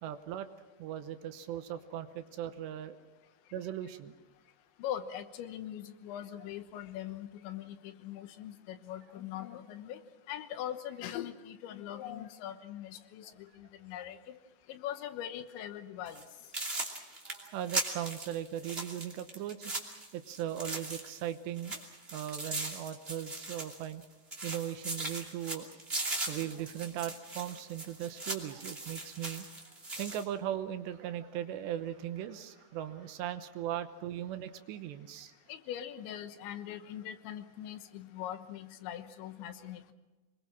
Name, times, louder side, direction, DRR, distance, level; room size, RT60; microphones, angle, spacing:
voice 1, 0.0-0.5 0.8-3.0 3.5-4.1 13.2-13.4 17.3-21.8 22.1-24.0 24.4-25.7 26.3-29.5 30.0-35.3, right 11 dB, 75° right, 9 dB, 3.1 m, -38 dB
voice 2, 4.8-10.0 10.3-13.3 13.6-14.4 14.7-16.2 35.5-39.9, left 11 dB, 80° left, 9 dB, 3.4 m, -41 dB
sound 1, 16.1-16.2 16.5-21.3 21.6-24.0 24.3-30.2, right 2 dB, 20° right, 2.0 m, -39 dB
26.0 x 22.0 x 6.1 m, 1.2 s
omnidirectional pair, 5.2 m